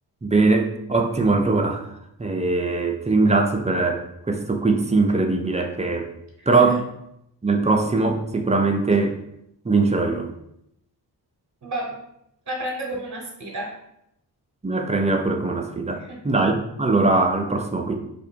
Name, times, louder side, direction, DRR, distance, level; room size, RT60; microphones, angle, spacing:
voice 1, 0.2-1.9 2.2-6.1 6.5-6.8 7.4-9.2 9.6-10.3 14.6-18.0, right 3 dB, 15° right, 3 dB, 0.4 m, -21 dB
voice 2, 6.4-6.8 11.6-12.0 12.5-13.8 15.9-16.2, right 1 dB, 50° right, -2 dB, 1.0 m, -31 dB
2.9 x 2.6 x 4.3 m, 0.79 s
wide cardioid pair, 95°, 41 cm